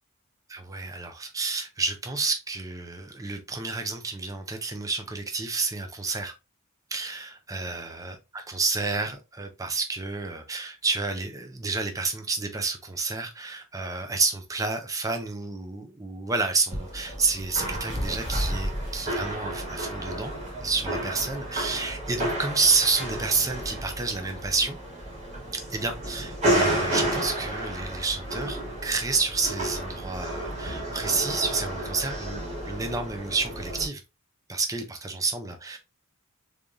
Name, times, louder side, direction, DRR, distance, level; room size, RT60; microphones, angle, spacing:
voice 1, 0.5-6.3 6.9-20.3 20.6-24.8 25.5-34.0 34.5-35.8, right 4 dB, 15° right, 0.5 m, -29 dB
sound 1, 16.7-33.9, right 1 dB, 30° right, 1.8 m, -31 dB
3.5 x 3.4 x 2.6 m
head